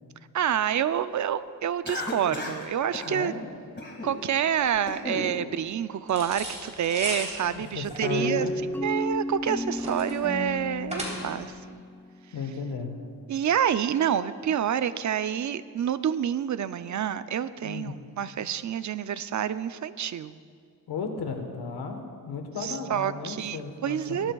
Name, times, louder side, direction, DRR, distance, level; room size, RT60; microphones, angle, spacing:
voice 1, 0.3-3.3 4.0-8.5 8.8-11.8 13.3-20.4 22.6-24.3, right 9 dB, 50° right, 14 dB, 0.5 m, -28 dB
Cough, 1.8-2.6 2.9-3.1 3.8-4.2 4.6-5.3, left 2 dB, 30° left, 2.0 m, -34 dB
voice 2, 3.1-3.4 7.4-8.5 12.3-13.0 17.6-17.9 20.9-24.3, left 5 dB, 90° left, 4 dB, 1.3 m, -34 dB
sound 1, 6.1-11.5, right 1 dB, 15° right, 3.3 m, -37 dB
sound 2, 8.0-12.7, left 1 dB, 5° left, 0.6 m, -33 dB
18.0 x 12.0 x 2.3 m, 2.1 s
cardioid pair, 85°, 38 cm